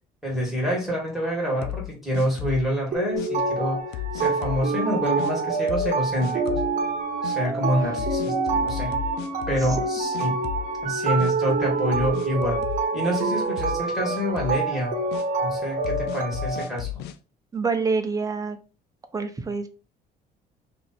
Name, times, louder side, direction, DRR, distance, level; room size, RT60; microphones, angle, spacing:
voice 1, 0.2-3.8 4.1-6.6 7.2-8.9 9.5-10.4 10.8-12.6 12.9-14.9 15.4-17.0, equal, ahead, -3 dB, 1.9 m, -27 dB
sound 1, 1.6-2.7 3.2-3.3 3.9-4.7 5.2-5.3 5.7-5.9 6.2-6.7 7.2-7.4 8.0-9.9 10.1-10.9 11.2-11.3 11.9-13.2 13.6-13.8 14.1-14.6 15.1-15.2 15.8-17.2, left 14 dB, 75° left, 0.5 m, -34 dB
sound 2, 2.9-16.6, right 3 dB, 50° right, 1.0 m, -26 dB
voice 2, 17.5-18.6 19.1-19.7, right 4 dB, 20° right, 7 dB, 0.6 m, -26 dB
2.9 x 2.6 x 4.2 m, 0.34 s
cardioid pair, 110°, 17 cm